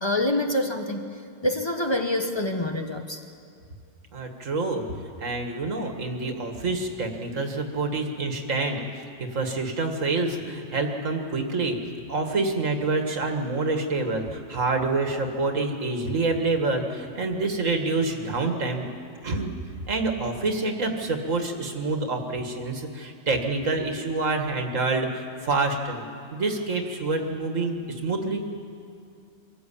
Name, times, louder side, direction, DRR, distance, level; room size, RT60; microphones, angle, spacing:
voice 1, 0.0-1.0 1.4-3.2, left 1 dB, 20° left, 3 dB, 1.3 m, -26 dB
voice 2, 4.1-4.8 5.2-8.9 9.2-11.8 12.1-18.9 19.2-19.5 19.9-26.0 26.3-27.8 28.0-28.4, right 3 dB, 85° right, 4 dB, 2.2 m, -27 dB
24.0 x 14.5 x 8.5 m, 2.5 s
omnidirectional pair, 1.3 m